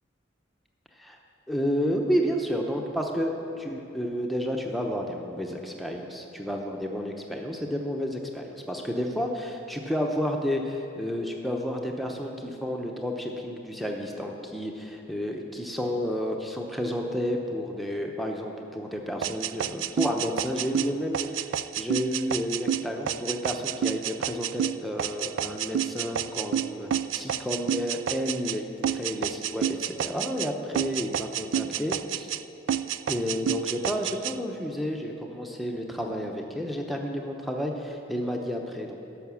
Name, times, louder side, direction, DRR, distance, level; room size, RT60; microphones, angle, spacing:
voice 1, 1.5-32.3 33.1-39.0, equal, ahead, 1 dB, 0.8 m, -31 dB
sound 1, 19.2-28.6 28.8-30.5 30.7-32.4 32.7-34.3, right 10 dB, 80° right, 0.3 m, -29 dB
11.0 x 6.4 x 7.1 m, 3.0 s
head